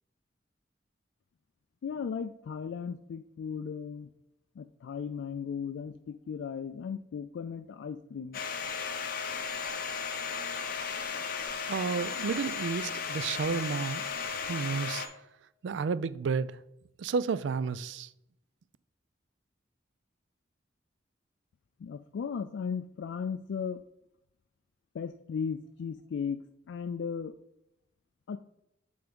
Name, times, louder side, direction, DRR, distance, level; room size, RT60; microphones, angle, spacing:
voice 1, 1.8-4.1 4.6-8.4 21.8-23.8 24.9-26.4 26.7-27.3 28.3-28.4, left 6 dB, 75° left, 0.3 m, -36 dB
Domestic sounds home sounds, 8.3-15.1, left 6 dB, 50° left, 0.7 m, -35 dB
voice 2, 11.7-15.0 15.6-16.6 17.0-18.1, right 5 dB, 75° right, 0.4 m, -32 dB
7.7 x 3.5 x 5.2 m
head